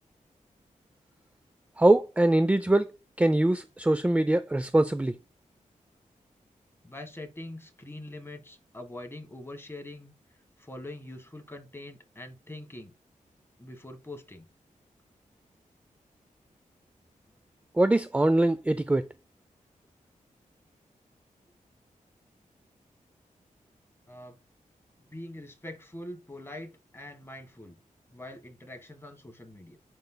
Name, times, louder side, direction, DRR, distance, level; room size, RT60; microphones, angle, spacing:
voice 1, 1.8-2.9 3.2-5.1 17.8-19.1, right 1 dB, 10° right, 0.4 m, -23 dB
voice 2, 6.8-10.1 10.6-12.9 13.6-14.5 24.1-24.4 25.1-27.8 28.1-29.8, left 1 dB, 15° left, 1.6 m, -43 dB
10.5 x 5.3 x 2.3 m
cardioid pair, 75°, 14 cm